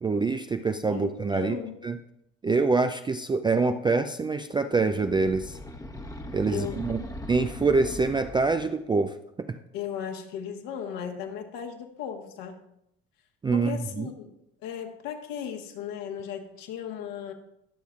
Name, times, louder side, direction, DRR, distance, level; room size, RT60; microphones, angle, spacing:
voice 1, 0.0-1.6 1.8-2.0 2.4-5.6 6.3-7.0 7.3-9.6 13.4-14.1, right 4 dB, 15° right, 8 dB, 0.3 m, -25 dB
voice 2, 0.9-1.8 6.5-6.8 9.7-12.6 13.5-14.3 14.6-17.3, left 8 dB, 60° left, 3 dB, 1.5 m, -36 dB
sound 1, 4.9-8.8, left 1 dB, 10° left, 1.0 m, -39 dB
20.5 x 6.9 x 2.4 m, 0.78 s
hypercardioid pair, 65°, 39 cm